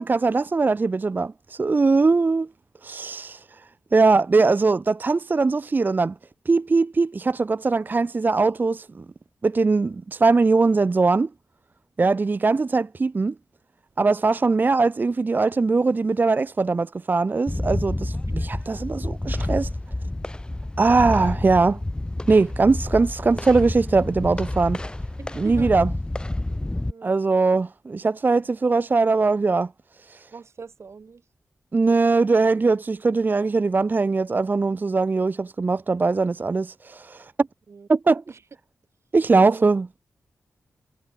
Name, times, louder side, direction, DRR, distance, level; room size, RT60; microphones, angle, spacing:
voice 1, 0.0-2.5 2.8-6.1 6.5-9.0 9.4-11.3 12.0-13.3 14.0-19.7 20.8-21.8 22.3-24.8 25.4-25.9 27.0-29.7 30.0-30.3 31.7-37.5 37.9-38.2 39.1-39.9, right 3 dB, 40° right, 0.5 m, -21 dB
voice 2, 12.0-12.4 23.3-23.4 25.2-25.7 26.9-27.1 30.3-31.2 37.7-37.9 38.3-38.4 39.3-39.6, right 5 dB, 60° right, 7.0 m, -41 dB
sound 1, 17.5-26.9, left 1 dB, 20° left, 1.3 m, -29 dB
cardioid pair, 60°, 5 cm